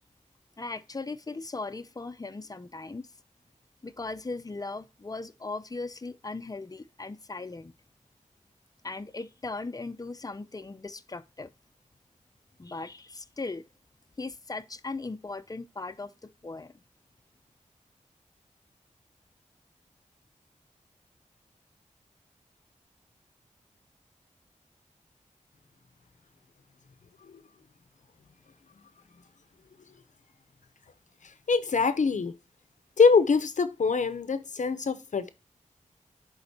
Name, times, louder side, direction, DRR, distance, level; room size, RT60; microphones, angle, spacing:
voice 1, 0.6-3.1 3.8-7.7 8.8-11.5 12.6-13.6 14.2-16.7, left 3 dB, 30° left, 0.6 m, -38 dB
voice 2, 31.5-32.3 33.0-35.3, left 5 dB, 65° left, 0.7 m, -23 dB
10.0 x 4.0 x 2.7 m
cardioid pair, 50°, 14 cm